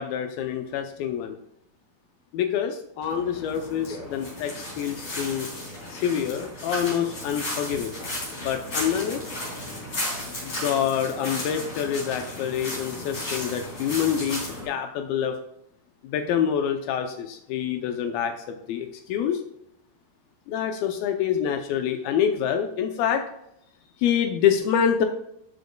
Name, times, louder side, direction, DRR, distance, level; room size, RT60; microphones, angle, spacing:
voice 1, 0.0-1.4 2.3-5.5 5.9-7.9 8.3-9.2 10.4-15.4 16.0-19.4 20.5-23.2 24.0-25.1, left 8 dB, 80° left, 5 dB, 2.5 m, -26 dB
sound 1, 3.0-14.7, left 1 dB, 40° left, 4.4 m, -34 dB
13.5 x 7.8 x 2.3 m, 0.77 s
omnidirectional pair, 4.3 m